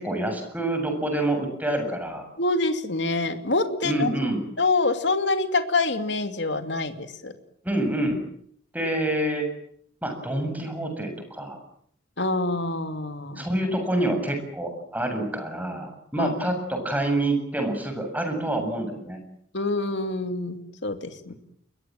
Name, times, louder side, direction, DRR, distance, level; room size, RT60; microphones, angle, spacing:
voice 1, 0.0-2.2 3.8-4.4 7.6-8.2 8.7-9.5 10.0-11.6 13.4-19.2, right 1 dB, 10° right, 5 dB, 7.3 m, -27 dB
voice 2, 2.4-4.1 4.6-7.3 12.2-13.5 16.2-16.3 19.5-21.3, left 3 dB, 60° left, 7 dB, 2.7 m, -26 dB
29.0 x 23.0 x 7.7 m, 0.66 s
head